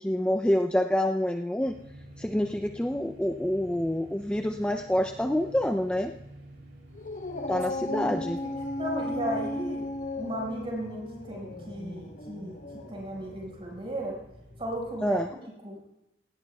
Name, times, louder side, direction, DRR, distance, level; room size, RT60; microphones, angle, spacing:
voice 1, 0.0-1.8 2.2-6.1 7.5-8.4 15.0-15.3, left 1 dB, 5° left, 5 dB, 0.4 m, -27 dB
sound 1, 1.6-15.3, right 1 dB, 70° right, 3.4 m, -49 dB
Dog, 6.9-13.6, left 1 dB, 45° left, 1.0 m, -36 dB
voice 2, 7.8-9.8 10.1-12.6 12.9-14.1 14.6-15.4 15.6-15.8, equal, 35° right, -2 dB, 4.9 m, -35 dB
17.5 x 17.0 x 2.3 m, 0.90 s
head